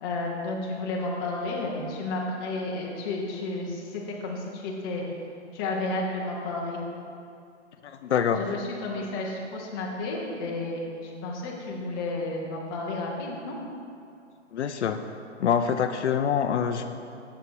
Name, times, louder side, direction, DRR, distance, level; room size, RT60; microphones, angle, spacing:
voice 1, 0.0-5.0 5.5-6.8 8.4-13.6, left 2 dB, 20° left, -2 dB, 0.8 m, -32 dB
voice 2, 7.8-8.4 14.5-15.0 15.4-16.9, left 8 dB, 70° left, 8 dB, 0.5 m, -25 dB
6.7 x 6.4 x 4.6 m, 2.5 s
hypercardioid pair, 155°, 36 cm